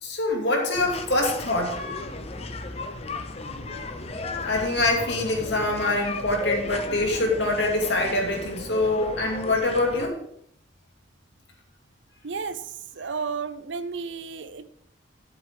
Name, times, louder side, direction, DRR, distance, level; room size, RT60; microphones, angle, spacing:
voice 1, 0.0-1.8 4.4-10.2, left 2 dB, 70° left, 0 dB, 2.4 m, -24 dB
sound 1, 0.7-10.1, left 3 dB, 35° left, 0.8 m, -35 dB
voice 2, 12.2-14.7, right 5 dB, 85° right, 12 dB, 0.7 m, -33 dB
11.0 x 8.0 x 3.7 m, 0.70 s
head